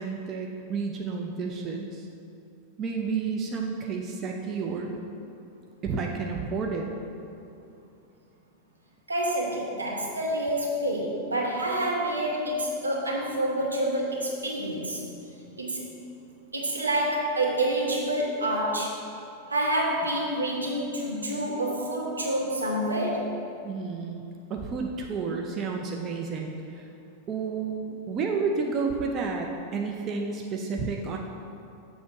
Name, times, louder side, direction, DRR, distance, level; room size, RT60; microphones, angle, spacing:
voice 1, 0.0-2.1 2.8-5.0 5.8-6.9 23.6-24.2 24.5-26.9 27.3-29.5 29.7-31.2, right 5 dB, 30° right, 1 dB, 0.5 m, -31 dB
voice 2, 9.1-15.0 15.6-15.8 16.5-19.0 19.5-23.2, right 1 dB, 80° right, -3 dB, 1.2 m, -28 dB
7.2 x 3.7 x 5.9 m, 2.6 s
figure-of-eight pair, 90°, 0 cm